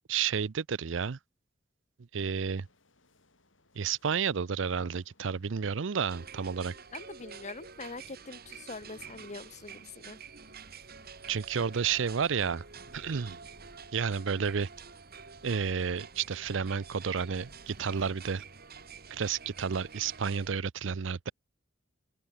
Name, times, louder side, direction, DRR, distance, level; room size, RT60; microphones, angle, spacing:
voice 1, 0.1-1.2 2.1-2.7 3.7-6.7 11.3-12.6 12.9-13.4 13.9-14.7 15.4-18.4 19.1-21.3, right 6 dB, 75° right, 0.6 m, -31 dB
sound 1, 2.5-13.6, left 2 dB, 90° left, 6.7 m, -68 dB
sound 2, 6.1-20.5, right 5 dB, 55° right, 3.6 m, -48 dB
voice 2, 6.9-10.2, left 3 dB, 40° left, 1.2 m, -44 dB
open air
head